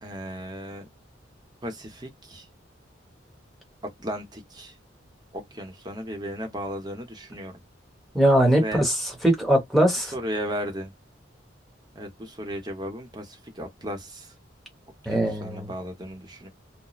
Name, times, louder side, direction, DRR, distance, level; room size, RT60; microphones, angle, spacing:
voice 1, 0.0-0.9 1.6-2.4 4.0-4.7 5.3-7.6 8.5-8.8 10.1-10.9 11.9-14.3 15.0-16.5, equal, 20° right, 0.8 m, -35 dB
voice 2, 8.1-8.9 9.2-10.1 15.1-15.7, right 1 dB, ahead, 1.0 m, -21 dB
2.3 x 2.1 x 3.0 m
head